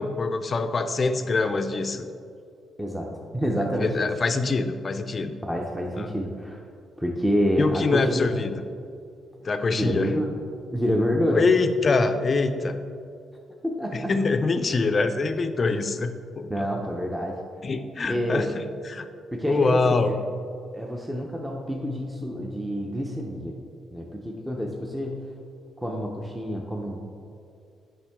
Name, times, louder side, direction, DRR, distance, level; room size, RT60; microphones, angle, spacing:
voice 1, 0.0-2.1 3.8-5.3 6.0-6.1 7.6-8.7 9.4-10.1 11.3-12.8 13.9-16.7 17.6-19.1 19.5-20.2, left 3 dB, 40° left, 9 dB, 0.4 m, -24 dB
voice 2, 3.3-4.1 5.4-6.6 7.0-8.3 9.7-10.3 10.7-11.5 13.6-14.1 16.5-17.3 18.1-18.5 19.3-20.2 20.7-23.6 23.9-25.2 25.8-27.0, equal, 5° right, 0 dB, 0.6 m, -27 dB
7.1 x 5.3 x 3.5 m, 2.5 s
cardioid pair, 90°, 0 cm